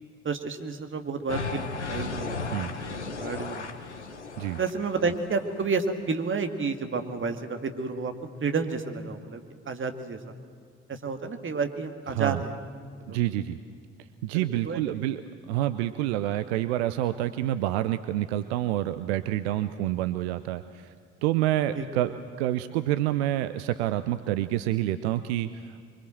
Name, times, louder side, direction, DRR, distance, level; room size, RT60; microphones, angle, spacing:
voice 1, 0.2-3.7 4.6-8.1 8.4-10.3 10.9-12.6 13.1-13.2 14.3-14.8 21.7-21.9, right 4 dB, 35° right, 6 dB, 2.2 m, -31 dB
sound 1, 1.3-5.7, left 4 dB, 85° left, 1.1 m, -36 dB
voice 2, 12.1-12.4 13.1-13.6 14.2-20.9 21.2-22.1 22.4-25.8, right 14 dB, 70° right, 12 dB, 0.7 m, -28 dB
25.0 x 24.0 x 7.8 m, 2.1 s
figure-of-eight pair, 40°, 34 cm